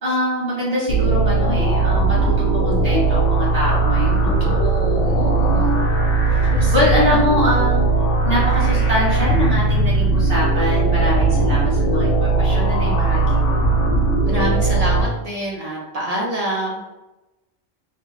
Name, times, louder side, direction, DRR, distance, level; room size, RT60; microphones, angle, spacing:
voice 1, 0.0-4.6 5.0-5.6 6.7-7.8 8.2-13.7, left 1 dB, 35° right, -8 dB, 1.3 m, -24 dB
sound 1, 0.9-15.0, right 3 dB, 65° left, 0.6 m, -18 dB
voice 2, 4.4-5.8 6.4-6.7 14.2-16.8, right 1 dB, 70° right, -5 dB, 0.3 m, -26 dB
2.9 x 2.0 x 2.2 m, 1.0 s
omnidirectional pair, 1.2 m